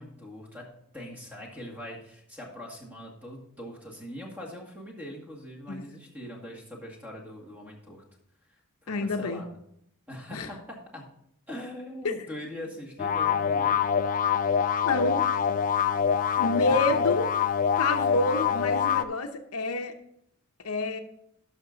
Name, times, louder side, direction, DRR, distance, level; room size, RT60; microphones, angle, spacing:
voice 1, 0.0-8.0 8.8-9.6 10.1-11.1 11.5-13.8 16.7-16.8, left 1 dB, 10° right, -1 dB, 2.0 m, -42 dB
voice 2, 8.9-9.4 10.3-10.5 12.0-12.2 14.8-15.2 16.4-17.3 17.8-19.9 20.6-21.0, left 2 dB, 70° left, 7 dB, 0.8 m, -28 dB
sound 1, 13.0-19.0, left 7 dB, 35° left, 0.4 m, -25 dB
11.5 x 6.0 x 3.9 m, 0.72 s
head